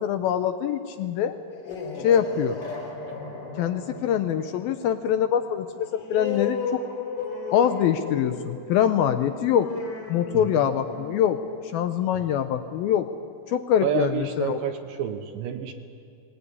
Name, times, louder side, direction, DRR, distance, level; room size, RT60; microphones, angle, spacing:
voice 1, 0.0-1.4 2.0-2.6 3.6-6.8 7.5-9.7 10.1-11.4 11.7-13.1 13.5-14.6, left 9 dB, 75° left, 9 dB, 2.3 m, -24 dB
sound 1, 1.4-12.6, left 5 dB, 45° left, 4.7 m, -36 dB
voice 2, 10.3-10.7 13.8-15.7, right 9 dB, 75° right, 6 dB, 2.4 m, -29 dB
20.5 x 19.5 x 9.8 m, 2.4 s
omnidirectional pair, 4.8 m